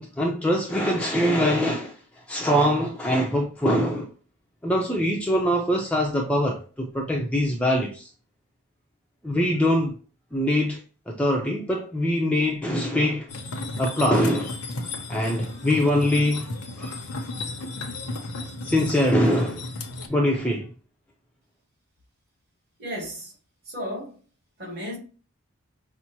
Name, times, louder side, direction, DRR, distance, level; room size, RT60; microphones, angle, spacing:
voice 1, 0.0-1.9 2.3-4.1 4.6-8.1 9.2-9.9 10.3-10.8 11.1-13.3 13.8-14.6 15.1-16.5 16.8-17.0 18.6-19.6 20.1-20.7, equal, 5° left, 0.5 m, -23 dB
sound 1, 13.3-20.1, left 2 dB, 80° left, 0.8 m, -34 dB
voice 2, 22.8-23.3 23.6-24.2 24.6-25.0, equal, 45° right, 2.0 m, -34 dB
5.8 x 2.0 x 2.9 m
head